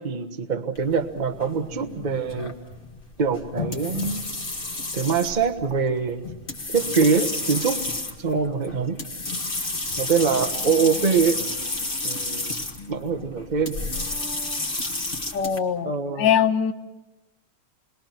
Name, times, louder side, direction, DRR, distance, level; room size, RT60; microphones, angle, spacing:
voice 1, 0.0-2.5 3.2-4.3 4.9-6.2 6.7-7.8 8.2-9.0 10.0-11.4 12.0-12.6 12.9-13.8 15.8-16.3, right 5 dB, 25° right, 6 dB, 1.2 m, -24 dB
sound 1, 0.8-15.6, left 2 dB, 25° left, 2.1 m, -31 dB
voice 2, 15.3-16.7, left 8 dB, 65° left, 8 dB, 1.6 m, -22 dB
28.5 x 22.0 x 6.0 m, 1.0 s
omnidirectional pair, 2.3 m